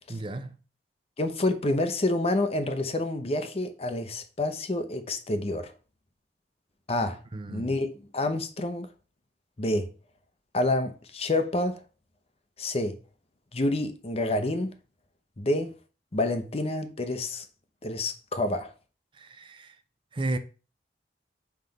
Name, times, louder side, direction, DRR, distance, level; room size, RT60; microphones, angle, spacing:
voice 1, 0.1-0.6 7.3-7.8 19.1-19.8 20.1-20.4, right 2 dB, 30° right, 0.5 m, -33 dB
voice 2, 1.2-5.7 6.9-7.2 7.5-8.9 9.6-9.9 10.5-11.8 12.6-13.0 13.5-14.7 15.4-15.7 16.1-17.4 17.8-18.7, left 2 dB, 35° left, 0.7 m, -28 dB
5.8 x 3.2 x 5.2 m
head